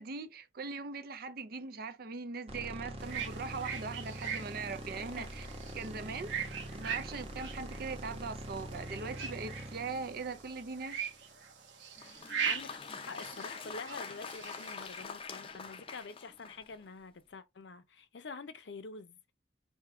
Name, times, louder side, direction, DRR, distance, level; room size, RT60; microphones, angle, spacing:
voice 1, 0.0-5.5 5.7-11.0, right 4 dB, 55° right, 0.5 m, -41 dB
sound 1, 2.5-11.7, right 1 dB, 35° right, 0.9 m, -44 dB
sound 2, 3.0-15.0, right 7 dB, 85° right, 1.0 m, -41 dB
voice 2, 12.0-12.8 13.1-19.3, left 4 dB, 75° left, 0.6 m, -47 dB
Applause, 12.0-16.8, left 5 dB, 30° left, 0.5 m, -45 dB
3.6 x 2.8 x 4.3 m
head